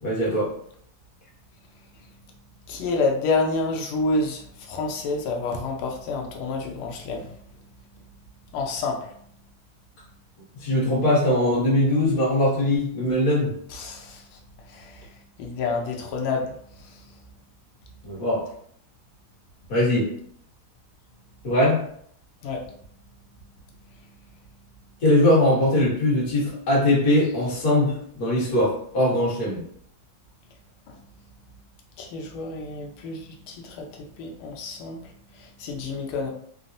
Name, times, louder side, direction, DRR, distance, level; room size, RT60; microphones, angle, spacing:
voice 1, 0.0-0.5 10.5-13.5 18.0-18.5 19.7-20.1 21.4-21.8 25.0-29.6, left 1 dB, 45° left, -6 dB, 1.5 m, -21 dB
voice 2, 1.7-2.4 2.7-8.1 8.5-9.2 13.7-17.3 18.1-18.2 22.4-22.8 23.8-24.4 30.9-31.3 32.0-36.3, left 3 dB, 80° left, 1 dB, 1.5 m, -30 dB
3.8 x 2.0 x 2.5 m, 0.64 s
omnidirectional pair, 2.3 m